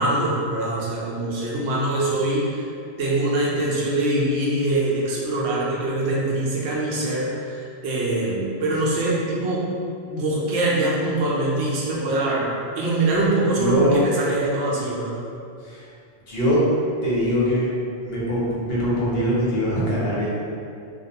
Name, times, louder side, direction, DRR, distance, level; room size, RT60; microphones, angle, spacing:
voice 1, 0.0-2.7 3.0-9.7 10.1-12.4 12.8-15.1, right 2 dB, 75° right, -5 dB, 0.8 m, -23 dB
voice 2, 13.6-14.0 15.7-15.8 16.3-16.6 17.0-17.7 18.0-20.4, equal, 65° left, -7 dB, 0.9 m, -22 dB
2.3 x 2.2 x 2.7 m, 2.4 s
omnidirectional pair, 1.1 m